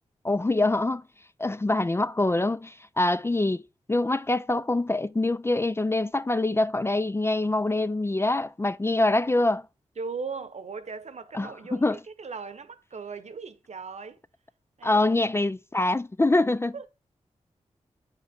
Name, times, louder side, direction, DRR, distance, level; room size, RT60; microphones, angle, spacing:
voice 1, 0.2-1.0 1.4-3.6 3.9-9.7 11.3-12.0 14.8-16.8, left 2 dB, 20° left, 0.4 m, -25 dB
voice 2, 10.0-14.2 14.8-15.0 16.7-16.9, right 4 dB, 65° right, 1.0 m, -38 dB
8.3 x 4.8 x 3.6 m
cardioid pair, 40°, 13 cm